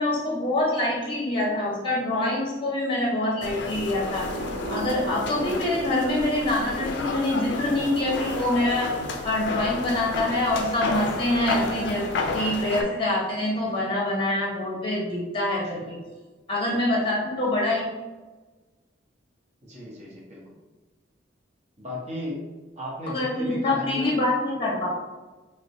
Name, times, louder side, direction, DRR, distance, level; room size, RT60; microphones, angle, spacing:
voice 1, 0.0-4.2 4.7-8.9 9.2-12.0 12.3-16.0 16.5-17.8 23.1-24.9, left 1 dB, 30° left, -4 dB, 0.8 m, -25 dB
sound 1, 3.4-12.8, left 3 dB, 65° left, 0.4 m, -31 dB
voice 2, 3.4-3.8 15.8-15.9 16.9-17.0 19.6-20.4 21.8-22.5 22.8-24.2, equal, 40° right, -4 dB, 0.8 m, -36 dB
Thunder / Rain, 3.7-14.1, right 2 dB, 85° right, 0.4 m, -42 dB
3.6 x 2.1 x 2.7 m, 1.2 s
head